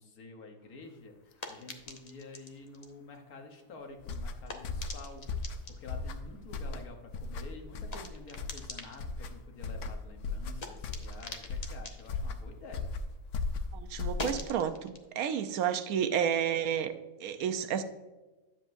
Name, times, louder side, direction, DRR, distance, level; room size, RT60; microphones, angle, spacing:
voice 1, 0.0-12.9, left 3 dB, 85° left, 4 dB, 1.6 m, -49 dB
sound 1, 0.6-13.3 13.6-16.9, left 2 dB, 35° left, 0.8 m, -48 dB
sound 2, 4.0-14.6, left 3 dB, 65° left, 0.9 m, -37 dB
voice 2, 13.7-16.9 17.2-17.8, right 8 dB, 80° right, 10 dB, 1.1 m, -31 dB
10.5 x 7.3 x 2.6 m, 1.1 s
omnidirectional pair, 1.5 m